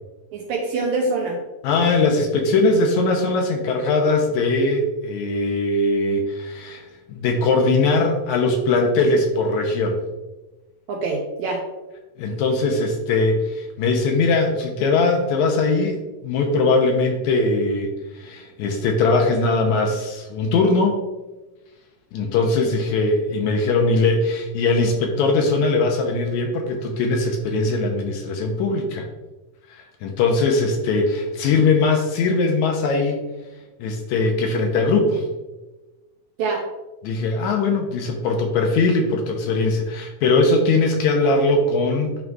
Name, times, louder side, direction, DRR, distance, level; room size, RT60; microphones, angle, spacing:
voice 1, 0.3-1.4 10.9-11.6 36.4-36.6, right 3 dB, 75° right, -1 dB, 2.0 m, -24 dB
voice 2, 1.6-10.0 12.2-21.0 22.1-29.0 29.7-33.2 33.8-35.3 37.0-42.1, left 3 dB, 80° left, 3 dB, 1.8 m, -20 dB
11.0 x 3.9 x 2.3 m, 1.1 s
omnidirectional pair, 3.8 m